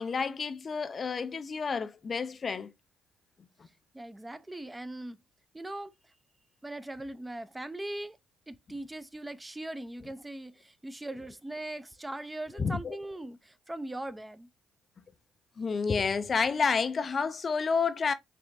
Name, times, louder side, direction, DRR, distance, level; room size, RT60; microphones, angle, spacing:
voice 1, 0.0-2.7 12.6-13.0 15.6-18.1, left 5 dB, 45° left, 0.4 m, -29 dB
voice 2, 3.9-5.2 5.5-5.9 6.6-8.2 8.5-14.5, right 1 dB, 15° right, 0.7 m, -40 dB
4.3 x 3.3 x 2.6 m
hypercardioid pair, 50°, 0 cm